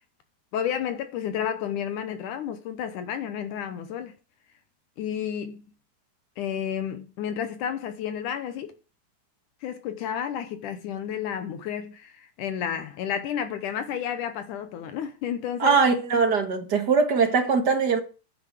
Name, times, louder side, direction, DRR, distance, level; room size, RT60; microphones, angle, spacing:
voice 1, 0.5-4.1 5.0-5.6 6.4-8.7 9.6-15.8, left 8 dB, 70° left, 2.2 m, -31 dB
voice 2, 15.6-18.0, right 5 dB, 40° right, 1.7 m, -21 dB
10.0 x 6.4 x 8.3 m
omnidirectional pair, 4.1 m